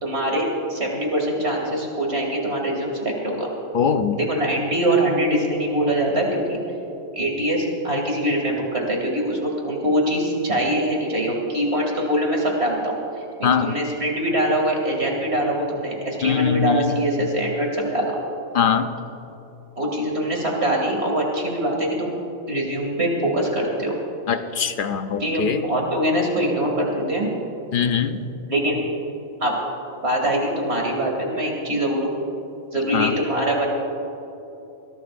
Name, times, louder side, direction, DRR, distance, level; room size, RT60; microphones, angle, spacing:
voice 1, 0.0-3.5 4.1-6.6 7.1-18.2 19.8-22.2 22.5-24.0 24.3-24.4 25.2-27.3 28.5-28.8 29.4-29.5 30.0-32.1 32.7-33.7, right 1 dB, 50° right, -1 dB, 2.9 m, -23 dB
voice 2, 3.7-4.2 13.4-13.8 16.2-16.9 18.5-18.9 24.3-25.6 27.7-28.2 32.9-33.1, left 7 dB, 50° left, 9 dB, 0.6 m, -21 dB
21.5 x 17.0 x 2.6 m, 3.0 s
omnidirectional pair, 1.4 m